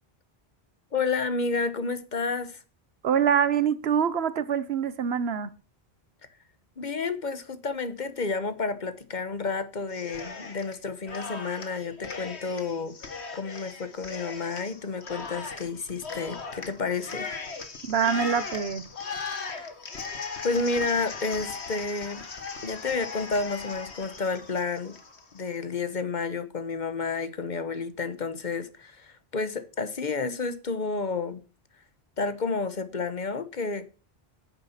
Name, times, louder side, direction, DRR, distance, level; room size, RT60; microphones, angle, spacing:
voice 1, 0.9-2.6 6.8-17.3 20.4-22.3 22.6-24.9 25.3-31.4 32.2-33.9, left 4 dB, 45° left, 1.2 m, -30 dB
voice 2, 3.0-5.5 17.9-18.9, right 7 dB, 75° right, 1.1 m, -25 dB
Cheering, 9.9-10.8 11.1-25.4, left 4 dB, 80° left, 1.8 m, -38 dB
9.9 x 8.7 x 5.8 m
omnidirectional pair, 1.1 m